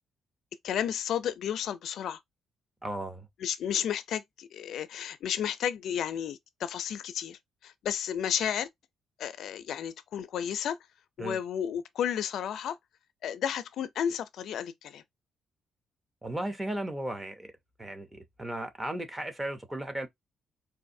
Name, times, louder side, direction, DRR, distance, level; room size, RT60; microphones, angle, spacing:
voice 1, 0.6-2.2 3.4-8.7 9.2-10.8 11.2-12.8 13.2-15.0, left 9 dB, 65° left, 0.4 m, -32 dB
voice 2, 2.8-3.3 11.2-11.4 16.2-17.5 17.8-20.1, right 1 dB, 10° right, 0.6 m, -35 dB
4.0 x 2.5 x 2.6 m
cardioid pair, 170°, 0 cm